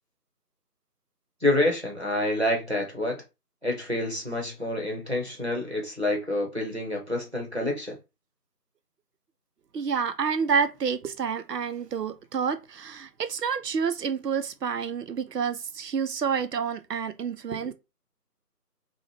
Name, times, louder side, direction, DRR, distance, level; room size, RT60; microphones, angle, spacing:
voice 1, 1.4-3.2 3.6-8.0, left 1 dB, 45° right, 0.7 m, -28 dB
voice 2, 9.7-17.7, right 6 dB, 80° right, 0.6 m, -29 dB
2.6 x 2.1 x 3.0 m
figure-of-eight pair, 180°, 48 cm